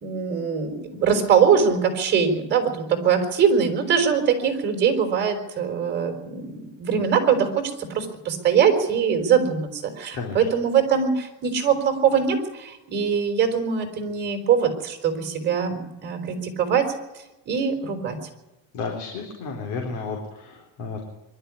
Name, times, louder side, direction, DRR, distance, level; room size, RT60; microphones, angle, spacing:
voice 1, 0.0-16.9 17.5-18.2, right 7 dB, 30° right, 5 dB, 4.4 m, -22 dB
voice 2, 18.7-21.0, left 4 dB, 60° left, 0 dB, 4.1 m, -32 dB
23.5 x 12.5 x 9.8 m, 1.0 s
cardioid pair, 160°, 33 cm